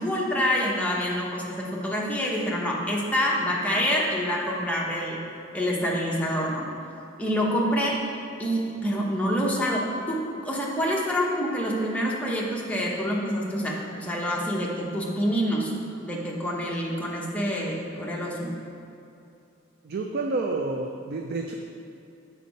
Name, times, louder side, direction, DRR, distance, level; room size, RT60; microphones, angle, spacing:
voice 1, 0.0-5.2 5.5-6.7 7.2-8.0 8.4-10.2 10.4-15.7 16.0-18.5, equal, 5° left, -4 dB, 0.9 m, -27 dB
voice 2, 19.8-21.5, right 3 dB, 55° right, 3 dB, 0.4 m, -29 dB
6.6 x 4.5 x 5.2 m, 2.7 s
head